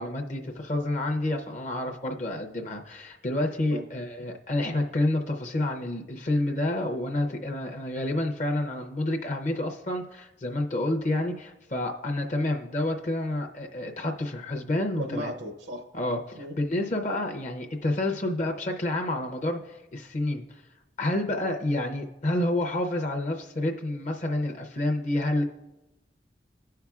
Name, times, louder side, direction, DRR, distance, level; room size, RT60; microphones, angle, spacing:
voice 1, 0.0-15.3 15.9-20.6 21.0-25.4, left 1 dB, 40° left, 3 dB, 0.6 m, -29 dB
voice 2, 14.9-15.9 16.4-16.5, equal, 70° right, 6 dB, 0.7 m, -35 dB
16.0 x 5.7 x 2.4 m, 0.98 s
head